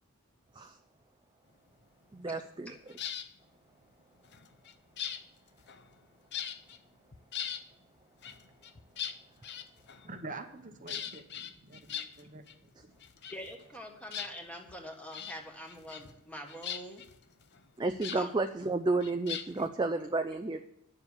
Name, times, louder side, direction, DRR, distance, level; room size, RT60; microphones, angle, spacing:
voice 1, 2.1-2.8 17.8-20.7, right 3 dB, 20° right, 7 dB, 0.4 m, -31 dB
sound 1, 2.9-3.3 4.2-6.0 6.3-6.8 7.1-7.7 8.2-10.2 10.9-12.6 12.8-13.8 14.1-14.8 15.1-15.4 15.7-16.2 16.5-18.2 19.0-19.7, left 8 dB, 50° left, 0.7 m, -41 dB
voice 2, 10.0-12.9, right 3 dB, 35° right, 6 dB, 0.9 m, -47 dB
voice 3, 13.3-17.0 18.1-18.3, equal, 5° left, 2 dB, 1.5 m, -45 dB
9.8 x 7.2 x 8.1 m, 0.77 s
head